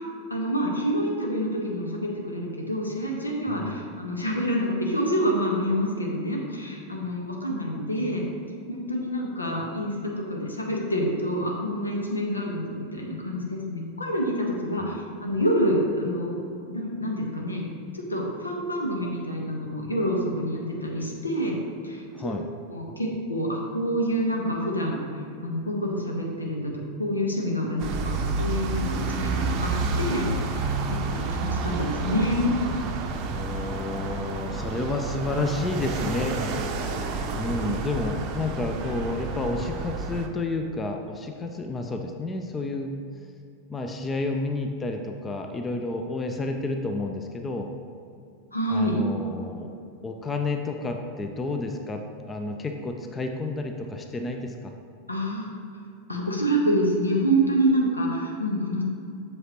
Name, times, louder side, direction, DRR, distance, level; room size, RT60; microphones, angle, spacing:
voice 1, 0.0-8.3 8.7-16.3 16.7-17.6 18.1-21.6 21.8-22.4 22.7-26.7 27.0-29.7 30.0-30.6 30.9-32.5 48.5-49.0 55.1-55.5 56.1-58.8, equal, 80° left, -1 dB, 1.1 m, -27 dB
voice 2, 3.5-3.8 14.8-14.9 22.1-22.5 33.3-36.4 37.4-42.9 43.7-47.7 48.7-49.7 50.0-54.7, left 2 dB, 15° left, 4 dB, 0.5 m, -30 dB
sound 1, 27.8-40.3, right 3 dB, 40° right, 0.7 m, -30 dB
7.8 x 6.6 x 3.0 m, 2.5 s
figure-of-eight pair, 90°, 0 cm